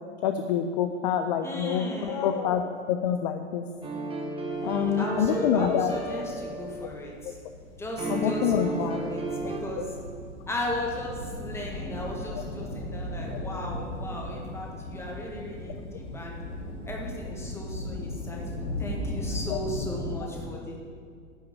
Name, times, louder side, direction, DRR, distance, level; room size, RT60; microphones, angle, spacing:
voice 1, 0.2-3.7 4.6-6.1 8.1-9.0 19.5-19.6, left 8 dB, 35° left, 7 dB, 0.5 m, -26 dB
voice 2, 1.4-2.4 4.6-7.4 7.8-9.9 10.5-16.4 16.9-18.4 18.8-20.8, left 1 dB, 5° left, -1 dB, 1.7 m, -36 dB
sound 1, 3.8-7.1 8.0-9.6, right 2 dB, 15° right, 1.4 m, -33 dB
sound 2, 4.5-20.2, left 1 dB, 50° left, 2.2 m, -37 dB
10.5 x 5.7 x 7.6 m, 2.1 s
figure-of-eight pair, 100°, 36 cm